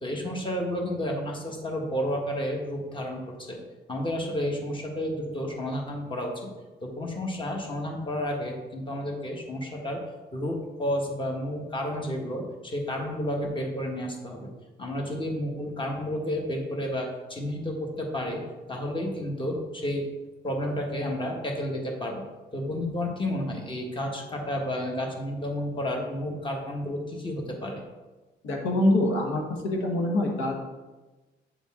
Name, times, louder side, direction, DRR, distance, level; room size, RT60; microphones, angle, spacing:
voice 1, 0.0-3.6 3.9-6.5 6.8-10.0 10.3-14.5 14.8-18.4 18.7-20.1 20.4-22.3 22.5-27.8, left 1 dB, 25° left, 1 dB, 1.3 m, -31 dB
voice 2, 28.4-30.6, left 1 dB, 90° left, 1 dB, 1.1 m, -25 dB
8.4 x 3.9 x 3.6 m, 1.2 s
cardioid pair, 90°, 20 cm